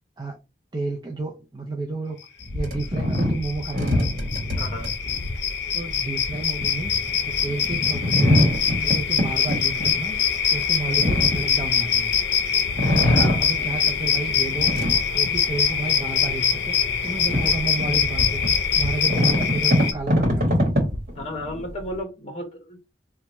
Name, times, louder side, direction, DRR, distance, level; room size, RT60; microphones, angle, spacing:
voice 1, 0.7-2.2 2.5-4.1 5.7-6.9 7.2-8.5 8.8-10.2 10.5-12.2 13.0-14.8 15.1-18.4 18.7-20.6, right 3 dB, 25° right, 0.4 m, -31 dB
sound 1, 2.4-12.3 12.6-14.1 14.5-15.8 16.3-16.4 16.8-21.9, left 1 dB, 50° right, 1.2 m, -24 dB
sound 2, 2.8-2.9 3.1-19.9, left 7 dB, 65° left, 0.6 m, -24 dB
voice 2, 4.6-4.9 10.8-11.2 12.9-13.5 21.1-22.8, left 1 dB, 35° left, 0.9 m, -34 dB
2.9 x 2.2 x 4.1 m
head